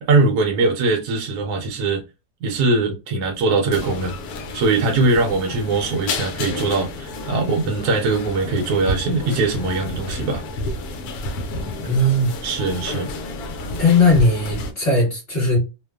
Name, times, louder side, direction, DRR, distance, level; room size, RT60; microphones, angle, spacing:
voice 1, 0.0-2.0 2.4-4.1 4.5-10.4 12.4-13.1, right 3 dB, 75° right, 1.0 m, -21 dB
sound 1, 3.7-14.7, left 2 dB, 70° left, 1.0 m, -30 dB
voice 2, 11.8-12.3 13.8-15.6, left 2 dB, 30° left, 1.3 m, -17 dB
2.8 x 2.1 x 2.2 m
omnidirectional pair, 1.8 m